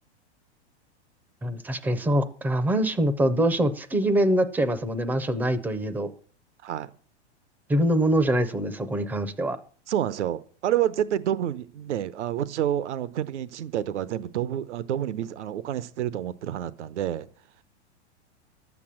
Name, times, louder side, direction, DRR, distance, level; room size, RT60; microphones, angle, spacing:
voice 1, 1.4-6.1 7.7-9.6, right 1 dB, 5° right, 0.5 m, -24 dB
voice 2, 9.9-17.3, right 11 dB, 80° right, 1.0 m, -28 dB
11.5 x 8.5 x 7.4 m
supercardioid pair, 155°, 34 cm